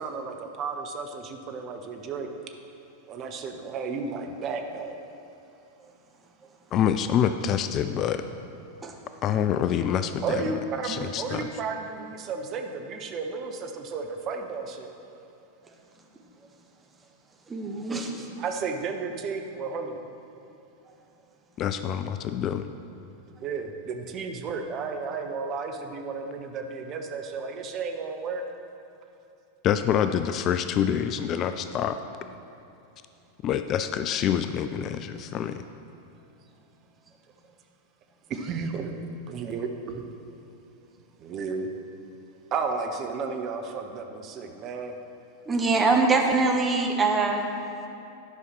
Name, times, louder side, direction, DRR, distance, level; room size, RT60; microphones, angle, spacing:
voice 1, 0.0-2.3 3.1-5.0 10.2-14.9 18.4-20.0 23.4-28.4 38.3-40.0 41.2-41.7 42.5-44.9, right 4 dB, 35° right, 4 dB, 0.8 m, -33 dB
voice 2, 6.7-8.2 9.2-10.4 10.8-11.5 21.6-22.7 29.6-32.0 33.4-35.6, left 9 dB, 35° left, 10 dB, 0.3 m, -26 dB
voice 3, 17.5-18.2 45.5-47.5, right 3 dB, 15° right, 1 dB, 1.1 m, -23 dB
10.5 x 5.6 x 6.1 m, 2.7 s
figure-of-eight pair, 90°, 0 cm